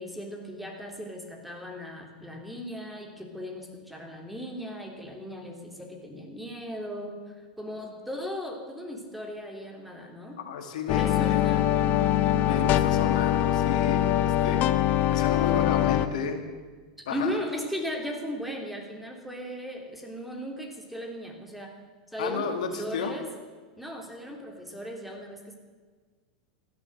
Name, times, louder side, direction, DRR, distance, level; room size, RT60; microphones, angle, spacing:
voice 1, 0.0-10.4 10.9-12.7 17.1-21.7 22.1-23.3 23.8-25.5, equal, 5° right, 2 dB, 3.4 m, -37 dB
voice 2, 10.4-11.5 12.4-14.6 15.1-16.4 17.1-17.3 22.2-23.2, left 6 dB, 75° left, 5 dB, 2.3 m, -32 dB
sound 1, 10.9-16.1, left 12 dB, 45° left, 0.8 m, -23 dB
15.0 x 11.0 x 8.0 m, 1.5 s
hypercardioid pair, 105°, 4 cm